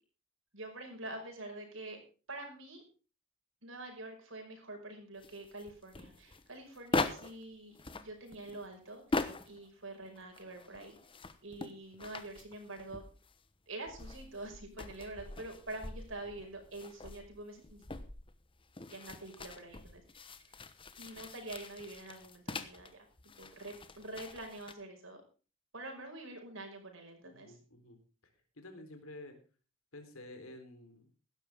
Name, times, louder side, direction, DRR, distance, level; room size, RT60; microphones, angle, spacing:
voice 1, 0.5-2.0 2.3-2.8 3.6-11.0 11.4-13.1 13.7-17.8 18.9-20.0 21.0-23.1 23.4-25.2 25.7-27.6, right 2 dB, 65° right, 3 dB, 5.5 m, -46 dB
sound 1, 5.2-7.4 7.7-9.7 10.0-13.4 13.9-22.9 23.2-24.7, left 3 dB, 25° left, 1.1 m, -42 dB
voice 2, 27.2-28.0 28.6-29.4 29.9-31.1, left 1 dB, 90° left, 6 dB, 3.7 m, -51 dB
16.5 x 12.5 x 3.6 m, 0.35 s
head